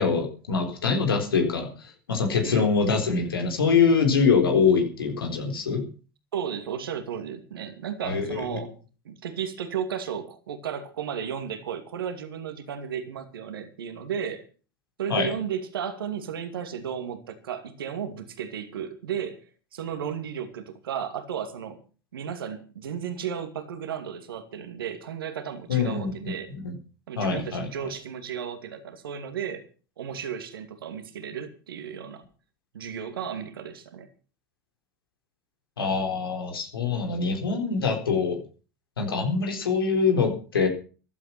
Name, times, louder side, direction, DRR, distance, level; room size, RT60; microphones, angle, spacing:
voice 1, 0.0-5.8 8.0-8.4 15.1-15.3 25.7-26.7 27.2-27.7 35.8-38.4 39.0-40.7, left 5 dB, 85° left, 4 dB, 4.1 m, -24 dB
voice 2, 6.3-8.7 9.0-14.5 15.0-19.4 19.7-21.8 22.1-26.5 27.1-29.6 30.0-32.2 32.7-34.1, right 8 dB, 80° right, 7 dB, 2.5 m, -34 dB
14.5 x 12.0 x 6.0 m, 0.38 s
hypercardioid pair, 85°, 12 cm